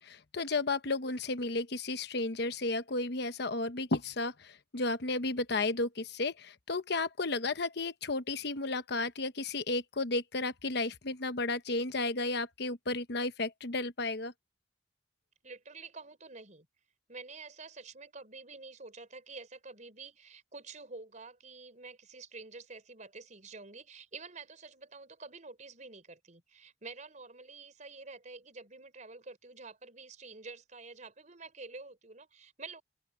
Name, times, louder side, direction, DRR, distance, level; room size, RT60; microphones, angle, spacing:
voice 1, 0.0-14.3, left 3 dB, 65° left, 1.0 m, -33 dB
voice 2, 15.4-16.7 17.1-32.8, right 3 dB, 45° right, 4.5 m, -48 dB
open air
head